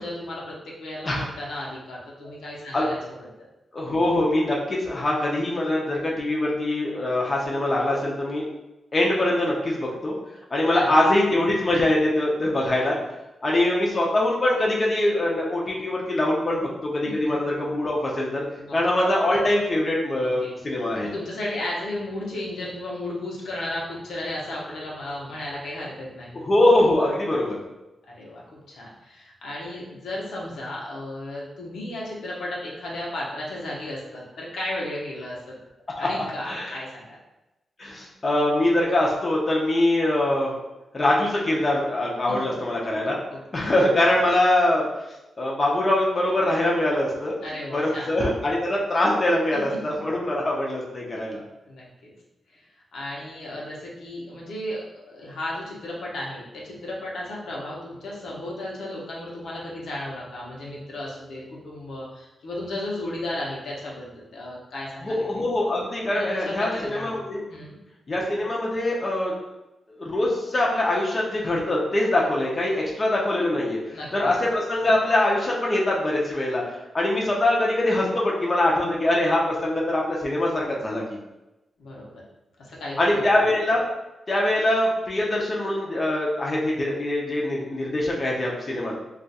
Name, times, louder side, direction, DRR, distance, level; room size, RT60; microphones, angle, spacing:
voice 1, 0.0-3.5 10.7-11.1 17.0-17.1 18.6-18.8 20.4-20.6 21.0-26.4 28.1-35.6 36.0-37.2 42.3-42.4 43.3-43.7 47.4-48.1 49.7-49.8 51.6-52.1 52.5-52.7 52.9-65.2 66.1-67.2 67.5-67.8 73.9-74.3 81.8-82.2 82.6-83.4, left 1 dB, 90° left, -4 dB, 0.8 m, -34 dB
voice 2, 3.7-8.4 8.9-10.1 10.5-13.0 13.4-18.4 18.7-21.1 26.4-27.6 36.0-36.1 36.4-36.8 37.8-40.5 40.9-43.2 43.5-44.9 45.4-47.4 47.7-51.4 65.0-67.4 68.1-69.3 70.0-81.0 83.0-83.8 84.3-89.0, left 1 dB, 35° left, -3 dB, 0.6 m, -23 dB
2.4 x 2.4 x 4.0 m, 0.99 s
wide cardioid pair, 105°, 0 cm